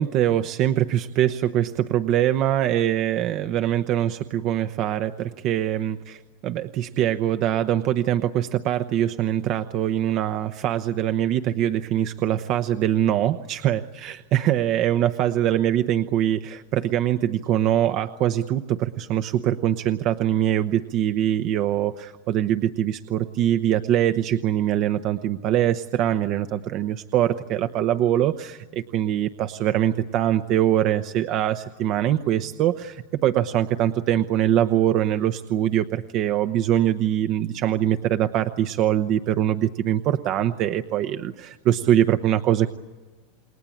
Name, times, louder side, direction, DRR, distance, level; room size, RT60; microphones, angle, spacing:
voice 1, 0.0-42.7, right 11 dB, 50° right, 9 dB, 1.0 m, -23 dB
28.5 x 21.0 x 8.7 m, 1.3 s
supercardioid pair, 120°, 0 cm